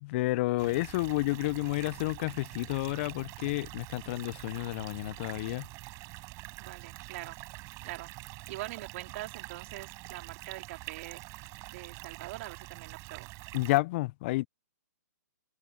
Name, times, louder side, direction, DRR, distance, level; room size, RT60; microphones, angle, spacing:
voice 1, 0.0-5.7 13.5-14.5, left 20 dB, 45° left, 0.6 m, -30 dB
sound 1, 0.6-13.8, right 23 dB, 35° right, 6.4 m, -45 dB
voice 2, 6.6-7.4 7.8-8.1 8.5-11.2 11.7-13.3, right 17 dB, 50° right, 3.0 m, -43 dB
hypercardioid pair, 135°, 9 cm